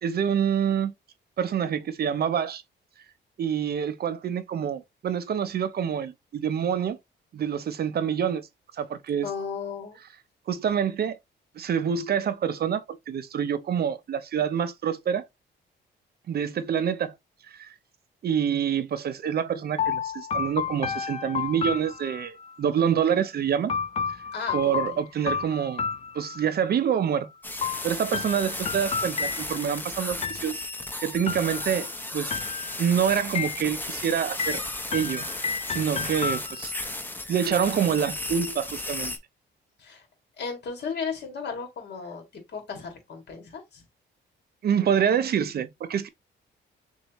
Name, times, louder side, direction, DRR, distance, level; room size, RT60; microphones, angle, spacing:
voice 1, 0.0-0.9 1.4-2.6 3.4-7.0 7.3-8.5 8.8-9.3 10.5-11.2 11.6-15.2 16.3-17.2 17.5-17.7 18.2-23.7 24.5-25.8 26.1-27.3 27.8-30.5 31.0-31.9 32.1-32.4 32.8-34.6 34.9-35.2 35.7-36.7 37.3-39.1 44.6-46.1, right 8 dB, 55° right, 0.6 m, -26 dB
voice 2, 9.2-10.0 24.3-25.0 39.8-40.1 40.4-43.8, left 5 dB, 60° left, 2.3 m, -35 dB
sound 1, 19.8-22.5 23.7-26.7 27.6-29.8 30.2-30.8 31.3-31.9 32.3-32.9 33.3-34.0 34.4-36.9, left 6 dB, 35° left, 0.4 m, -32 dB
sound 2, 27.4-39.2, left 2 dB, 10° left, 0.8 m, -35 dB
6.4 x 2.6 x 3.0 m
cardioid pair, 120°, 20 cm